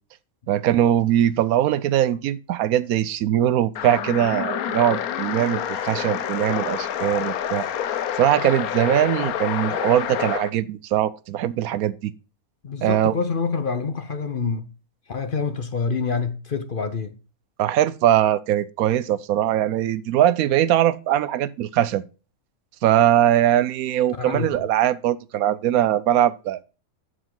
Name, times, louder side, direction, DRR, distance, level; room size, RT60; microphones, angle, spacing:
voice 1, 0.5-7.6 8.2-12.1 12.8-13.1 17.6-22.0 22.8-26.6, right 11 dB, 85° right, 1.1 m, -21 dB
sound 1, 3.8-10.5, left 9 dB, 85° left, 1.2 m, -27 dB
voice 2, 12.6-14.7 15.1-17.2 24.2-24.6, left 5 dB, 45° left, 0.8 m, -26 dB
12.5 x 5.0 x 3.8 m
omnidirectional pair, 1.5 m